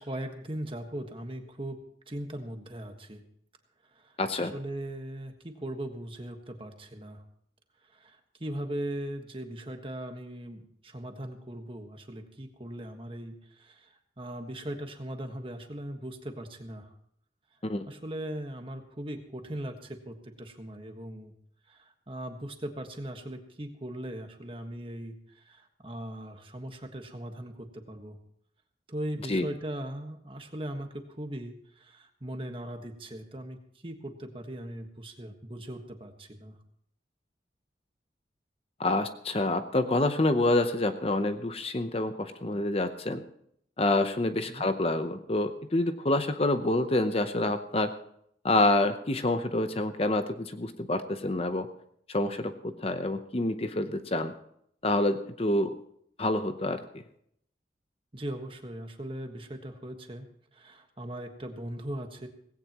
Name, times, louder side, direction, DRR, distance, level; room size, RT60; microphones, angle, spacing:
voice 1, 0.0-1.8 2.1-3.2 3.9-4.1 4.4-7.2 7.9-16.9 17.9-21.3 21.7-28.2 28.9-36.6 44.5-44.7 58.1-60.3 60.5-62.3, right 1 dB, 30° right, 5 dB, 1.5 m, -39 dB
voice 2, 4.2-4.5 17.6-17.8 29.3-29.5 38.8-43.2 43.8-47.9 48.4-51.7 52.1-54.3 54.8-55.7 56.2-57.0, left 2 dB, 30° left, 9 dB, 0.7 m, -27 dB
18.0 x 16.5 x 3.0 m, 0.69 s
head